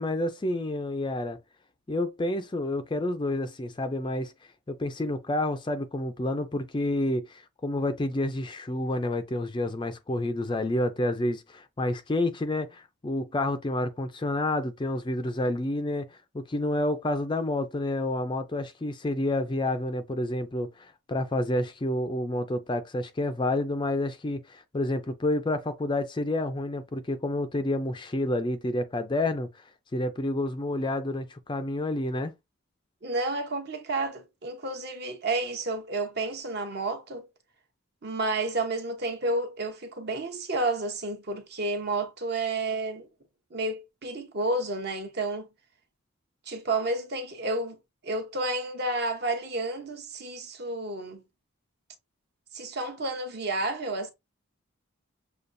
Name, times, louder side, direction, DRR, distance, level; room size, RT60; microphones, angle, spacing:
voice 1, 0.0-1.4 1.9-4.3 4.7-29.6 29.9-32.3, left 1 dB, 20° left, 0.3 m, -29 dB
voice 2, 33.0-37.3 38.0-43.1 43.5-45.5 46.5-47.8 48.0-51.2 52.5-54.1, right 2 dB, 50° right, 0.8 m, -31 dB
6.7 x 2.3 x 2.6 m
head